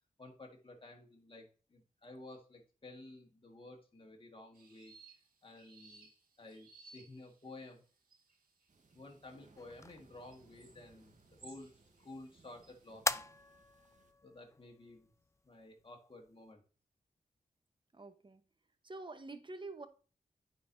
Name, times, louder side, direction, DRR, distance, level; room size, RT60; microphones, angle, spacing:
voice 1, 0.2-4.9 5.4-6.1 6.4-7.9 8.9-11.7 12.0-13.2 14.2-15.1 15.4-16.6, left 2 dB, 35° left, 1 dB, 1.7 m, -53 dB
sound 1, 4.5-12.9, right 3 dB, 75° right, 1.9 m, -62 dB
sound 2, 8.7-14.1, right 3 dB, 55° right, 1.1 m, -66 dB
sound 3, 9.6-16.5, left 3 dB, 20° left, 0.4 m, -44 dB
voice 2, 17.9-18.4 18.8-19.9, right 2 dB, 35° right, 10 dB, 1.0 m, -47 dB
9.4 x 4.2 x 2.7 m, 0.36 s
cardioid pair, 45°, 15 cm